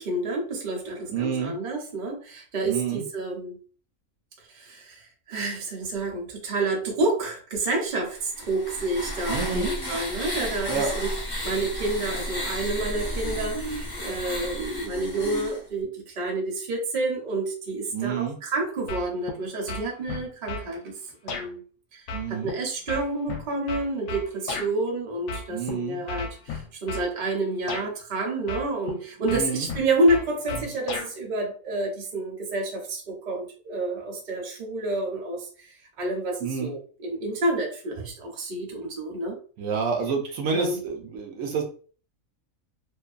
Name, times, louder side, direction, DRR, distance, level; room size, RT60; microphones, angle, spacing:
voice 1, 0.0-3.6 4.5-11.1 11.4-21.6 21.9-22.0 22.3-39.4 40.5-40.8, right 2 dB, 45° right, 0 dB, 0.7 m, -29 dB
voice 2, 1.1-1.5 2.6-3.0 9.3-9.7 10.7-10.9 17.9-18.3 22.1-22.5 25.5-26.0 29.2-29.7 36.4-36.7 39.6-41.6, right 6 dB, 75° right, 2 dB, 0.9 m, -28 dB
sound 1, 8.1-15.6, equal, 35° left, 0.3 m, -33 dB
sound 2, 18.9-19.4 19.7-20.7 21.3-21.5 22.1-24.7 25.3-25.7 26.1-27.1 27.7-27.9 28.5-29.0 29.3-31.1, left 3 dB, 75° left, 1.0 m, -34 dB
2.6 x 2.2 x 2.4 m, 0.41 s
omnidirectional pair, 1.4 m